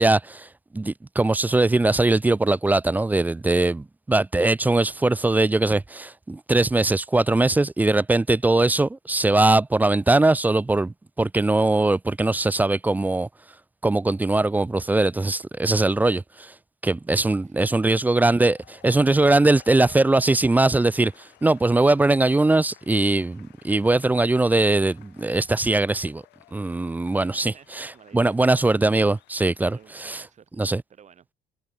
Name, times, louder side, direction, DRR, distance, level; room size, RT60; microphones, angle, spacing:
voice 1, 0.0-13.3 13.8-16.5 16.8-26.2 26.5-27.9 28.1-30.2 30.6-30.8, right 2 dB, 10° right, 0.4 m, -21 dB
voice 2, 17.1-17.7 27.2-28.4 29.7-31.3, right 8 dB, 45° right, 3.6 m, -53 dB
sound 1, 18.3-29.9, left 18 dB, 85° left, 2.5 m, -56 dB
cardioid pair, 110°, 17 cm